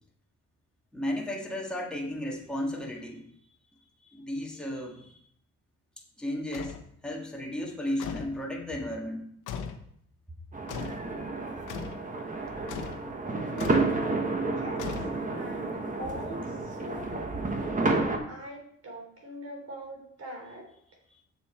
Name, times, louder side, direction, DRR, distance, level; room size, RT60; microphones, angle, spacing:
voice 1, 0.9-3.2 4.0-5.2 6.2-9.3, left 1 dB, 5° left, -2 dB, 1.9 m, -34 dB
sound 1, 6.5-6.9 8.0-8.4 9.5-9.9 10.7-11.1 11.7-12.0 12.7-13.1 13.6-13.9 14.8-15.4, left 6 dB, 85° left, 1.0 m, -38 dB
sound 2, 10.5-18.2, right 3 dB, 25° right, 1.4 m, -30 dB
voice 2, 14.0-14.8 15.3-17.3 17.6-17.9 18.3-20.7, equal, 55° right, 1 dB, 3.6 m, -42 dB
7.4 x 7.1 x 4.4 m, 0.69 s
cardioid pair, 90°, 30 cm